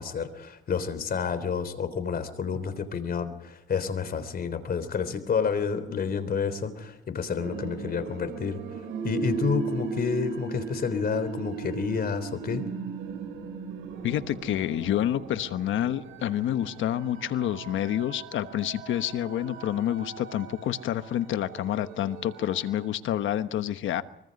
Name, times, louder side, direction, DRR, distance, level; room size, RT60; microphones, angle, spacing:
voice 1, 0.0-8.6 9.0-12.6, left 6 dB, 50° left, 11 dB, 3.6 m, -29 dB
sound 1, 7.4-22.9, right 5 dB, 90° right, 6.9 m, -38 dB
voice 2, 14.0-24.0, left 11 dB, 75° left, 11 dB, 1.2 m, -28 dB
24.5 x 23.5 x 5.4 m, 0.87 s
cardioid pair, 90°, 20 cm